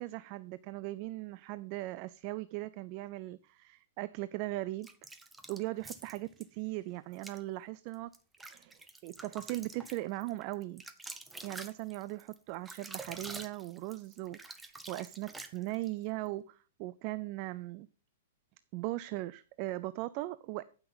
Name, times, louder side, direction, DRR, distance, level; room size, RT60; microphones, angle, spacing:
voice 1, 0.0-4.9 5.5-8.1 8.5-10.8 11.4-17.9 18.7-20.6, right 18 dB, 35° right, 0.4 m, -39 dB
sound 1, 4.8-6.5 7.1-7.4 7.9-15.9, right 3 dB, 5° right, 0.7 m, -47 dB
15.0 x 5.9 x 4.0 m
hypercardioid pair, 165°, 0 cm